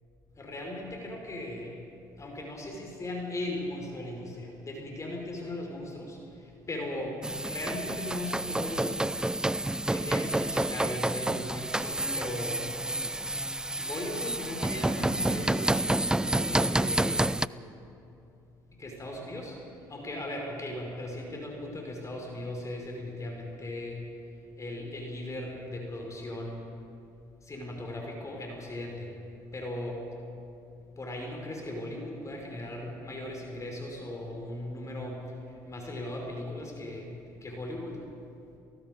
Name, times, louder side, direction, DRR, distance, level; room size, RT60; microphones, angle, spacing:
voice 1, 0.4-1.8 2.2-8.9 9.9-12.6 13.8-17.3 18.8-19.6 19.9-24.1 24.6-26.6 27.4-29.1 29.5-30.0 31.0-35.3 35.6-37.1 37.4-38.0, left 1 dB, 30° left, 1 dB, 5.4 m, -38 dB
sound 1, 7.2-17.5, right 1 dB, 5° right, 0.5 m, -29 dB
29.0 x 18.5 x 5.3 m, 2.6 s
hypercardioid pair, 65°, 11 cm